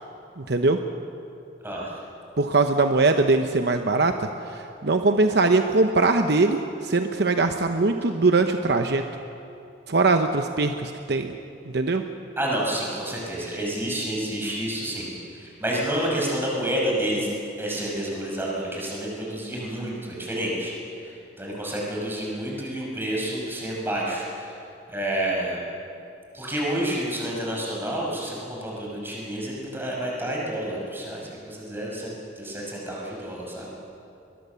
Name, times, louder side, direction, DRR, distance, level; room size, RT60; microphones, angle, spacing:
voice 1, 0.4-0.8 2.4-4.3 4.8-9.0 9.9-11.3 11.7-12.0, right 3 dB, 60° right, 6 dB, 0.9 m, -21 dB
voice 2, 1.6-1.9 12.4-17.3 17.6-20.7 21.0-24.5 24.9-25.6 26.3-33.7, right 1 dB, 10° right, -3 dB, 5.9 m, -29 dB
23.0 x 21.5 x 7.0 m, 2.6 s
head